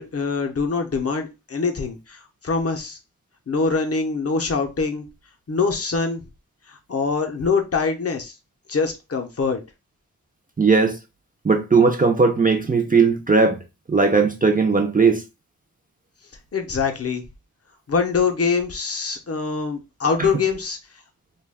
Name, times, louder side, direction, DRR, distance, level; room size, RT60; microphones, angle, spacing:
voice 1, 0.0-3.0 3.5-5.1 5.5-6.2 6.7-8.3 8.7-9.6 16.5-17.2 17.9-20.8, left 4 dB, 40° left, 0.6 m, -24 dB
voice 2, 10.6-11.0 11.4-13.6 13.9-15.2 20.2-20.3, right 4 dB, 25° right, 0.4 m, -18 dB
2.2 x 2.2 x 3.4 m
wide cardioid pair, 75°, 35 cm